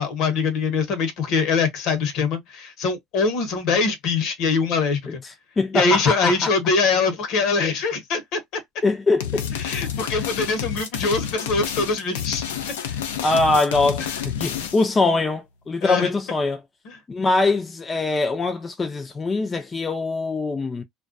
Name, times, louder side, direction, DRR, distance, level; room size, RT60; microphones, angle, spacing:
voice 1, 0.0-5.2 5.7-8.4 9.6-12.4 15.8-16.1 16.8-17.0, left 4 dB, 70° left, 0.9 m, -23 dB
voice 2, 5.6-6.5 8.8-9.5 12.8-16.6 17.1-20.8, left 3 dB, 30° left, 0.4 m, -23 dB
sound 1, 9.2-14.9, left 9 dB, 90° left, 0.4 m, -29 dB
2.3 x 2.2 x 2.5 m
hypercardioid pair, 75°, 0 cm